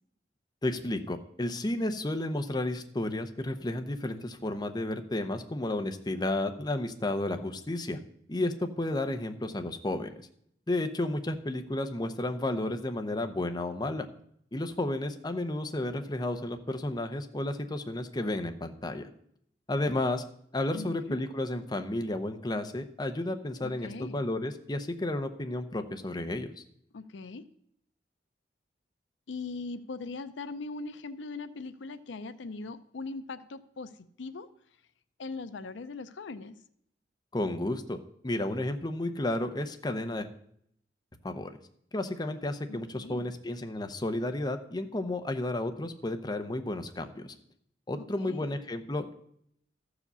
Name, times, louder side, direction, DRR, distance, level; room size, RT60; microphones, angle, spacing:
voice 1, 0.6-8.0 8.3-10.1 10.7-14.0 14.5-19.1 19.7-20.2 20.5-26.5 37.3-38.0 38.2-40.3 41.2-41.6 41.9-47.3 47.9-49.1, left 1 dB, 25° left, 7 dB, 0.7 m, -32 dB
voice 2, 20.7-21.2 23.6-24.2 26.9-27.5 29.3-34.5 35.2-36.6 42.7-43.3 48.0-48.5, left 3 dB, 85° left, 13 dB, 0.5 m, -40 dB
13.5 x 5.0 x 6.8 m, 0.70 s
head